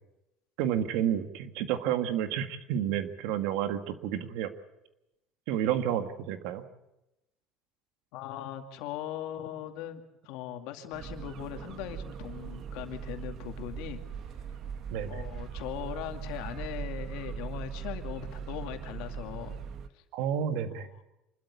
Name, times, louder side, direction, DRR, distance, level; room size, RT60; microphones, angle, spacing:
voice 1, 0.6-4.5 5.5-6.6 14.9-15.2 20.1-20.9, right 10 dB, 80° right, 9 dB, 1.8 m, -30 dB
voice 2, 8.1-14.0 15.1-19.6, left 11 dB, 80° left, 6 dB, 2.4 m, -39 dB
sound 1, 10.9-19.9, right 7 dB, 50° right, 1.3 m, -40 dB
26.0 x 12.5 x 9.6 m, 0.91 s
cardioid pair, 120°, 0 cm